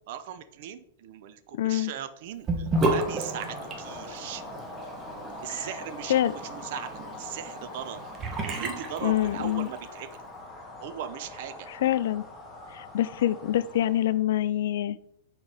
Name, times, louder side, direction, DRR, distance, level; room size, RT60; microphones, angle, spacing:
voice 1, 0.1-4.4 5.4-8.0 8.4-10.2 10.8-11.7, right 10 dB, 60° right, 11 dB, 0.6 m, -39 dB
voice 2, 1.5-1.9 5.5-5.7 6.1-6.3 9.0-9.7 11.8-12.2 12.7-15.0, left 12 dB, 70° left, 17 dB, 0.3 m, -25 dB
Sink (filling or washing) / Bathtub (filling or washing), 2.5-9.8, right 2 dB, 25° right, 1.1 m, -33 dB
sound 1, 2.7-14.2, left 2 dB, 15° left, 1.5 m, -42 dB
4.5 x 4.3 x 4.8 m, 0.73 s
hypercardioid pair, 115°, 0 cm